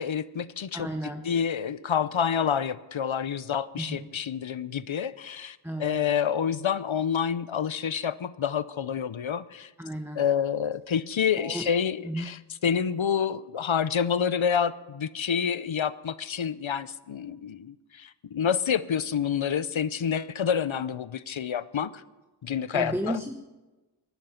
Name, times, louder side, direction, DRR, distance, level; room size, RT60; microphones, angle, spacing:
voice 1, 0.0-0.9 1.2-9.7 10.2-21.9 22.4-23.2, left 7 dB, 85° left, 16 dB, 0.7 m, -28 dB
voice 2, 0.7-1.3 3.8-4.1 5.6-6.0 9.8-10.2 11.4-11.7 12.0-12.3 22.7-23.3, equal, 5° right, 5 dB, 1.0 m, -33 dB
19.5 x 12.0 x 5.7 m, 1.1 s
wide cardioid pair, 45°, 46 cm